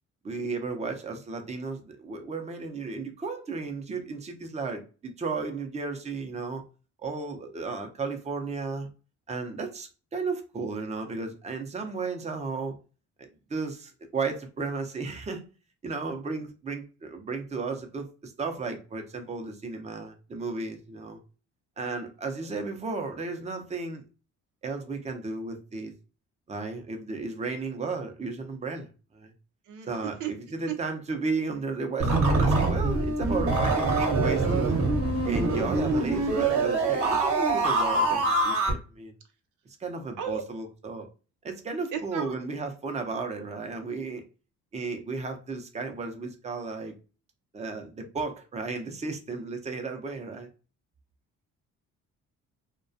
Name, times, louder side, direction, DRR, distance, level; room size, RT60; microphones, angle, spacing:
voice 1, 0.2-6.6 7.0-8.9 9.3-12.8 13.2-15.4 15.8-21.2 21.8-24.1 24.6-25.9 26.5-28.9 29.1-29.3 29.9-34.8 35.3-39.1 39.8-41.1 41.4-44.2 44.7-46.9 47.5-50.5, right 4 dB, 20° right, 0.5 m, -34 dB
sound 1, 32.0-38.7, right 3 dB, 45° right, 0.8 m, -24 dB
voice 2, 41.9-42.3, right 9 dB, 90° right, 0.6 m, -33 dB
2.3 x 2.2 x 2.5 m
cardioid pair, 90°, 30 cm